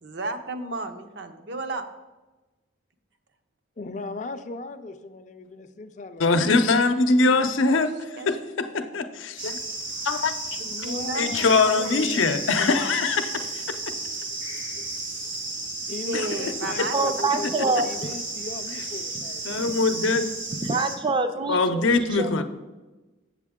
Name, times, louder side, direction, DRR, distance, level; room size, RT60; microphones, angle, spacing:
voice 1, 0.0-1.9 7.1-7.8 8.2-8.3 10.6-11.5 11.8-11.9 16.1-17.2, right 2 dB, 65° right, 7 dB, 0.6 m, -33 dB
voice 2, 3.8-6.4 10.6-12.5 15.9-19.8, left 3 dB, 40° left, 9 dB, 0.4 m, -38 dB
voice 3, 6.2-9.6 10.0-10.6 11.2-13.8 14.8-14.9 16.1-16.3 19.4-20.3 21.5-22.4, left 3 dB, 80° left, 8 dB, 0.6 m, -23 dB
sound 1, 9.4-21.0, right 2 dB, 80° right, 1.6 m, -33 dB
voice 4, 16.9-17.9 20.6-21.8 22.1-22.4, right 3 dB, 25° right, 8 dB, 0.4 m, -25 dB
7.7 x 7.3 x 3.6 m, 1.2 s
head